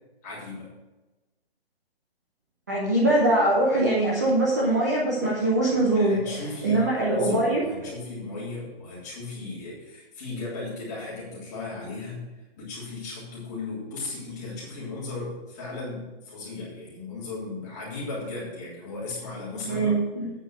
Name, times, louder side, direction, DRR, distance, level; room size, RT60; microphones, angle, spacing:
voice 1, 0.2-0.7 5.9-20.0, left 3 dB, 15° left, -8 dB, 3.4 m, -36 dB
voice 2, 2.7-6.2 6.6-7.6 19.6-20.3, right 1 dB, 15° right, -5 dB, 0.9 m, -22 dB
9.0 x 7.2 x 6.4 m, 1.1 s
hypercardioid pair, 180°, 31 cm